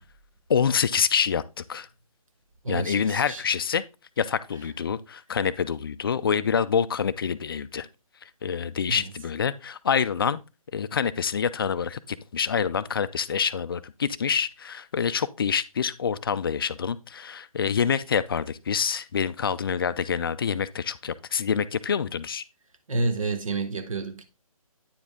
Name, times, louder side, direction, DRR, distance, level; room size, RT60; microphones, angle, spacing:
voice 1, 0.5-1.9 2.7-3.8 4.2-7.9 8.4-10.4 10.7-22.4, left 7 dB, 40° left, 0.4 m, -26 dB
voice 2, 2.6-3.4 8.9-9.0 22.9-24.2, right 3 dB, 65° right, 1.2 m, -29 dB
9.3 x 4.9 x 3.5 m
figure-of-eight pair, 150°, 19 cm